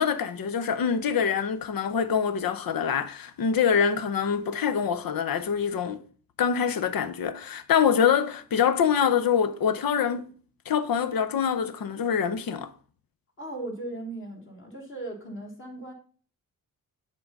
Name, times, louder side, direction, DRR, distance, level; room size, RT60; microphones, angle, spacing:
voice 1, 0.0-6.0 6.4-10.2 10.7-12.7, left 7 dB, 80° left, 0.8 m, -25 dB
voice 2, 13.4-15.9, right 2 dB, 35° left, 1.7 m, -37 dB
8.5 x 3.8 x 5.2 m
wide cardioid pair, 160°, 34 cm